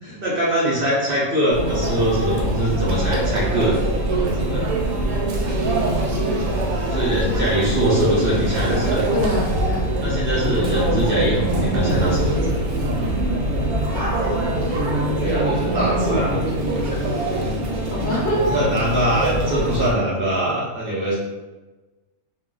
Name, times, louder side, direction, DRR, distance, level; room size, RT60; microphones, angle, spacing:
voice 1, 0.0-3.8 4.1-4.7 6.9-9.0 10.0-12.6 15.2-16.5 17.4-17.5 18.5-21.2, right 1 dB, 45° right, -6 dB, 0.8 m, -22 dB
Conversation / Chatter / Crowd, 1.5-19.9, right 1 dB, 90° right, 1.1 m, -23 dB
voice 2, 9.1-9.9 13.9-14.1 14.6-14.7 17.9-18.6, left 1 dB, 55° left, -6 dB, 0.5 m, -26 dB
2.4 x 2.2 x 3.7 m, 1.2 s
omnidirectional pair, 1.5 m